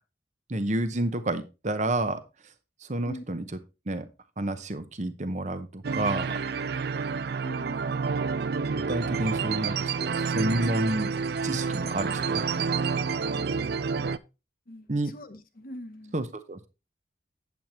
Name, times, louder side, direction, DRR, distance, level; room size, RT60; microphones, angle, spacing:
voice 1, 0.5-2.2 2.8-3.4 3.9-4.1 4.4-6.4 8.9-11.1 11.4-12.5 14.9-15.1 16.1-16.7, right 1 dB, 40° right, 0.8 m, -29 dB
sound 1, 5.8-14.2, right 5 dB, 60° right, 0.4 m, -29 dB
voice 2, 7.4-8.0 14.7-16.2, left 1 dB, 50° left, 1.0 m, -42 dB
8.8 x 8.1 x 3.0 m
head